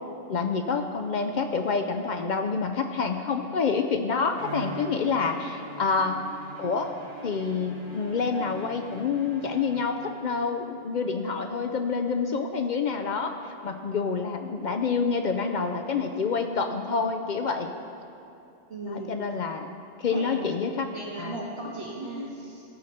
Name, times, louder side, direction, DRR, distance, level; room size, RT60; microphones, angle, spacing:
voice 1, 0.3-6.2 6.6-6.9 7.2-17.7 18.9-19.7 20.0-20.9 21.2-21.3, left 5 dB, 60° left, 5 dB, 0.5 m, -27 dB
Bowed string instrument, 4.3-10.4, right 2 dB, 85° right, 1.7 m, -43 dB
voice 2, 18.7-19.1 20.1-20.5 20.9-22.6, right 1 dB, 60° right, -5 dB, 1.4 m, -36 dB
14.0 x 6.6 x 4.2 m, 2.7 s
omnidirectional pair, 1.2 m